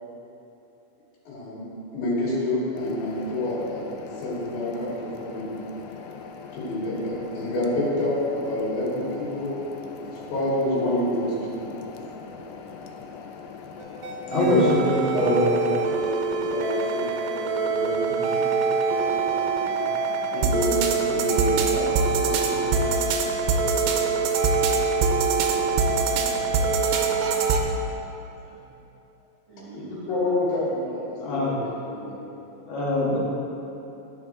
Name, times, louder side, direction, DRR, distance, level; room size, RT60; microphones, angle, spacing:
voice 1, 1.3-1.6 1.9-3.9 4.2-5.5 6.5-9.5 10.0-11.6 14.3-14.6 15.1-15.5 15.8-16.0 16.4-18.2 20.3-21.8 30.1-31.6 31.9-32.2, left 1 dB, 70° left, -8 dB, 3.8 m, -27 dB
sound 1, 2.8-14.8, left 5 dB, 90° left, 1.8 m, -41 dB
sound 2, 13.8-27.6, right 4 dB, 90° right, 2.4 m, -24 dB
voice 2, 14.3-15.8 16.3-16.4 31.2-31.6 32.7-33.2, left 1 dB, 55° left, -6 dB, 1.5 m, -24 dB
voice 3, 18.0-18.5 18.8-24.0 24.4-25.2 25.8-27.9 28.3-28.7 29.5-30.1, right 2 dB, 65° right, -10 dB, 3.7 m, -43 dB
12.0 x 5.8 x 3.7 m, 2.9 s
omnidirectional pair, 4.2 m